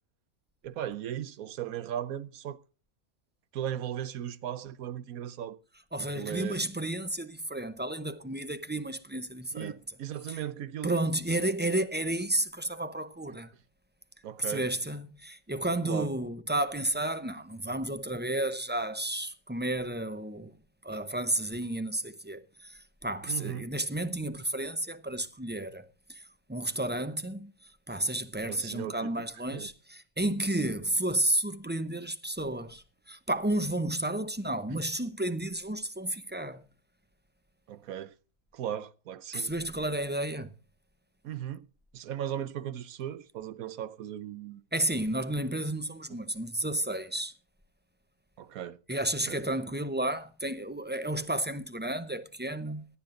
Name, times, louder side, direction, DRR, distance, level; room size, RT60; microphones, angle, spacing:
voice 1, 0.6-2.6 3.5-5.6 6.0-6.6 9.5-10.9 14.2-14.7 15.8-16.1 23.3-23.7 28.5-29.3 29.5-29.7 34.7-34.8 37.7-38.1 38.5-39.5 41.2-41.7 41.9-44.6 48.4-48.8 49.3-49.4, right 10 dB, 75° right, 1.2 m, -37 dB
voice 2, 5.9-9.8 10.3-10.4 10.8-13.5 14.4-20.5 20.8-26.2 26.5-27.5 27.9-36.7 39.3-40.5 44.7-47.3 48.9-52.9, right 1 dB, 15° right, 0.4 m, -32 dB
18.0 x 11.5 x 3.8 m
omnidirectional pair, 1.5 m